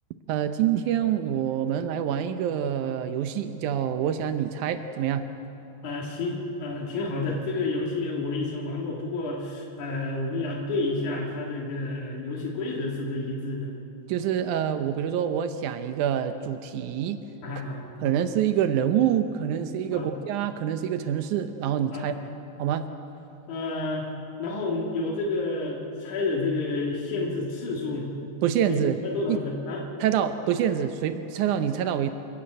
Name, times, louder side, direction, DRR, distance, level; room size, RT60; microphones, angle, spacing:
voice 1, 0.3-5.3 14.1-17.2 18.0-22.1 22.6-22.9 28.4-29.0 29.3-29.4 30.0-32.1, right 9 dB, 85° right, 9 dB, 2.2 m, -26 dB
voice 2, 5.8-13.7 17.4-18.1 19.9-20.1 21.9-22.3 23.5-24.1 24.4-28.1 28.7-29.8, left 3 dB, 75° left, -3 dB, 3.5 m, -30 dB
28.5 x 11.5 x 8.8 m, 2.8 s
omnidirectional pair, 3.5 m